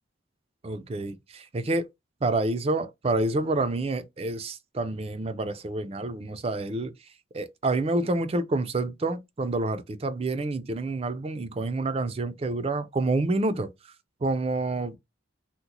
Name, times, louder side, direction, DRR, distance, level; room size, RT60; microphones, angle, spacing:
voice 1, 0.6-1.9 2.2-6.9 7.3-13.7 14.2-15.0, right 2 dB, 30° right, 0.4 m, -28 dB
2.9 x 2.1 x 3.8 m
head